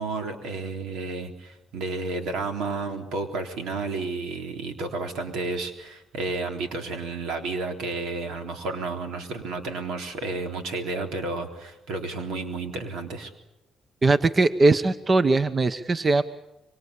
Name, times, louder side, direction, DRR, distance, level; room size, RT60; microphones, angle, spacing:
voice 1, 0.0-13.3, right 3 dB, 85° right, 5 dB, 3.6 m, -31 dB
voice 2, 14.0-16.2, right 3 dB, 30° right, 12 dB, 1.1 m, -20 dB
25.0 x 24.0 x 8.4 m, 0.94 s
cardioid pair, 90°, 0 cm